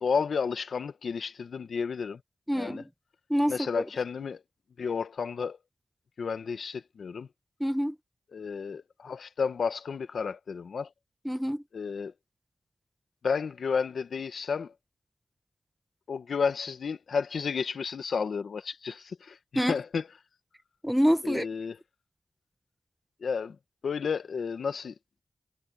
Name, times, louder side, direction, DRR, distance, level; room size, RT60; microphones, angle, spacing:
voice 1, 0.0-2.2 2.5-2.8 3.5-4.4 4.8-5.6 6.2-7.3 8.3-10.9 11.7-12.1 13.2-14.7 16.1-20.0 21.2-21.8 23.2-23.6 23.8-24.9, left 5 dB, 90° left, 1.2 m, -32 dB
voice 2, 2.5-2.8 3.3-3.8 7.6-8.0 11.2-11.6 19.5-19.7 20.8-21.5, equal, ahead, 1.2 m, -26 dB
cardioid pair, 60°, 0 cm